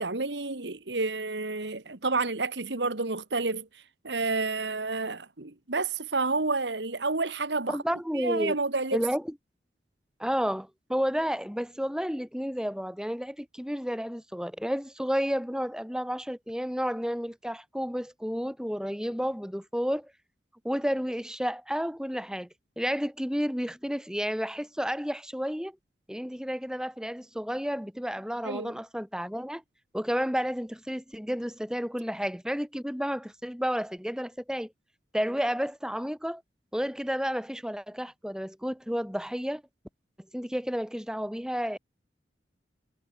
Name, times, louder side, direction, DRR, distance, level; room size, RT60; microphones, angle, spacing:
voice 1, 0.0-7.8 8.1-9.0 28.4-28.7, right 3 dB, 80° right, 2.0 m, -30 dB
voice 2, 7.7-8.5 8.9-9.3 10.2-20.1 20.6-22.5 22.8-25.7 26.1-29.6 29.9-34.7 35.1-36.4 36.7-39.6 40.3-41.8, equal, 5° right, 6.7 m, -31 dB
head